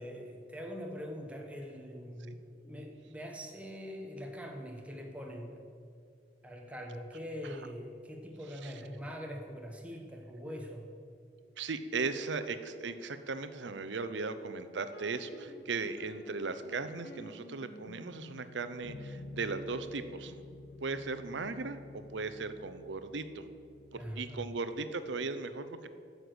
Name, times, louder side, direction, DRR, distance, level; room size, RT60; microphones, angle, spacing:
voice 1, 0.0-5.6 6.4-10.9 23.9-24.4, equal, 5° right, 1 dB, 1.1 m, -43 dB
voice 2, 11.6-20.3 20.8-23.4 23.9-25.9, right 4 dB, 75° right, 11 dB, 0.7 m, -37 dB
sound 1, 14.9-24.7, left 2 dB, 55° left, 0.9 m, -51 dB
9.6 x 6.6 x 7.9 m, 2.3 s
head